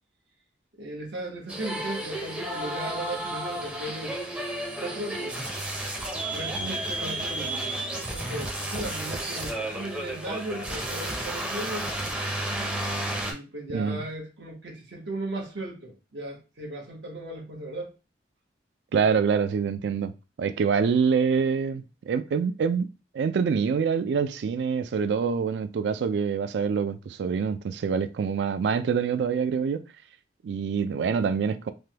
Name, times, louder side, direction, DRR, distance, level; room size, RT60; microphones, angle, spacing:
voice 1, 0.8-4.1 4.8-5.4 6.3-11.9 13.2-17.9, right 1 dB, 85° right, 1.2 m, -36 dB
sound 1, 1.5-13.3, right 1 dB, 5° right, 0.5 m, -32 dB
voice 2, 18.9-20.1 20.4-22.9 23.1-29.9 30.4-31.7, right 6 dB, 70° right, 0.3 m, -26 dB
3.3 x 2.2 x 2.8 m
head